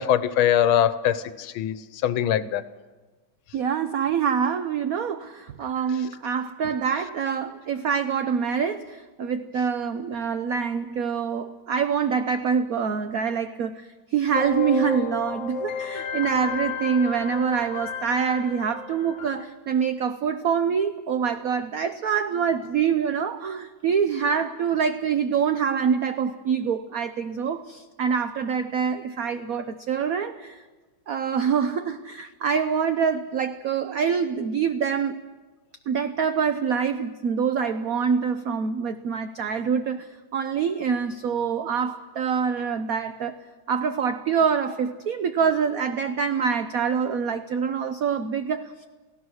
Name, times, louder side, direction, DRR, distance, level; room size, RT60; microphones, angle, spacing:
voice 1, 0.0-1.8 2.0-2.6, left 10 dB, 90° left, 14 dB, 1.7 m, -22 dB
voice 2, 3.5-30.6 31.1-35.2 35.9-43.4 43.7-48.9, right 6 dB, 60° right, 10 dB, 1.0 m, -25 dB
sound 1, 14.3-19.4, left 6 dB, 65° left, 1.5 m, -32 dB
29.0 x 17.0 x 6.4 m, 1.3 s
omnidirectional pair, 2.2 m